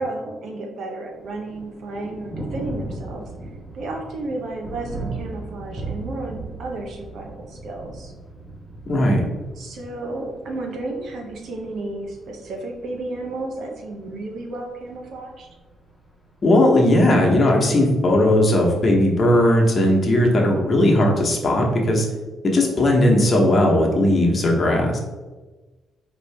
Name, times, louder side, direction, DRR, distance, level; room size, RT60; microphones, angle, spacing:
voice 1, 0.0-3.3 3.7-8.1 9.6-15.5, right 2 dB, 70° right, 2 dB, 0.8 m, -32 dB
Thunder, 1.1-19.1, right 2 dB, 10° left, 1.1 m, -38 dB
voice 2, 8.9-9.2 16.4-22.1 22.4-25.0, left 1 dB, 40° left, -1 dB, 1.0 m, -17 dB
4.3 x 2.7 x 3.3 m, 1.2 s
cardioid pair, 90°, 0 cm